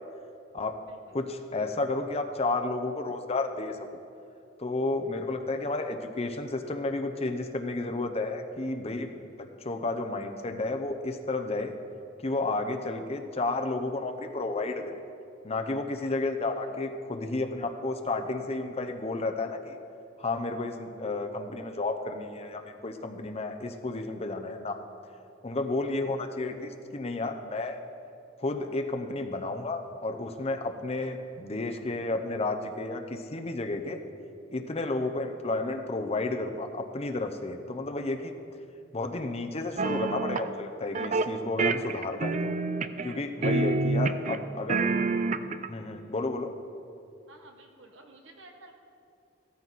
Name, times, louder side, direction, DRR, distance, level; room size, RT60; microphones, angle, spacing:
voice 1, 1.1-3.8 4.6-9.2 9.6-11.8 12.2-15.0 15.4-19.8 20.2-24.8 25.4-27.8 28.4-34.0 34.5-38.3 38.9-42.5 43.0-44.8 45.7-46.5, left 2 dB, 35° left, 5 dB, 0.8 m, -32 dB
voice 2, 16.2-16.8 43.3-43.8 47.3-48.7, right 2 dB, 85° right, 3 dB, 1.6 m, -53 dB
sound 1, 39.8-40.5 40.9-41.3 41.6-43.1 43.4-44.4 44.7-45.7, right 3 dB, 40° right, 0.5 m, -27 dB
16.5 x 13.5 x 4.1 m, 2.6 s
head